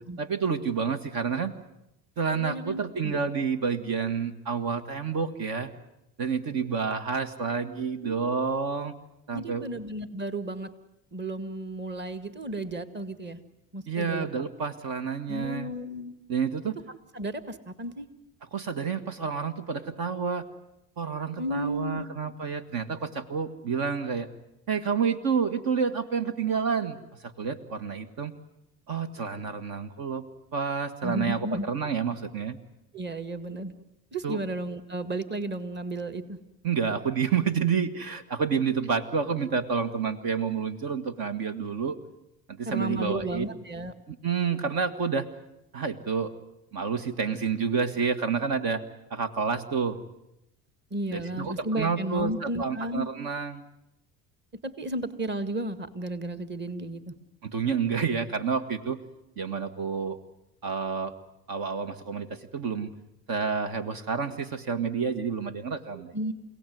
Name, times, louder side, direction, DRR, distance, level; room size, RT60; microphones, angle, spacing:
voice 1, 0.0-1.5 2.2-5.7 6.2-8.9 9.3-9.7 13.9-15.7 16.3-16.8 18.5-20.4 21.0-24.3 24.7-27.0 27.2-28.3 28.9-30.2 30.5-32.6 34.2-34.4 36.6-42.0 42.6-43.5 44.1-45.3 45.7-46.3 46.7-48.8 49.1-50.0 51.1-53.6 57.4-59.0 59.4-60.2 60.6-61.1 61.5-62.9 63.3-66.1, right 6 dB, 60° right, 9 dB, 1.9 m, -29 dB
voice 2, 2.4-3.1 8.0-8.2 9.3-10.7 11.1-13.4 13.7-14.3 15.3-16.1 17.1-18.1 21.4-22.1 31.0-31.6 32.9-33.7 34.1-36.4 42.7-43.9 50.9-53.1 54.6-57.1 65.9-66.3, right 1 dB, 25° right, 11 dB, 2.0 m, -33 dB
29.5 x 17.5 x 9.4 m, 0.88 s
supercardioid pair, 90°, 40 cm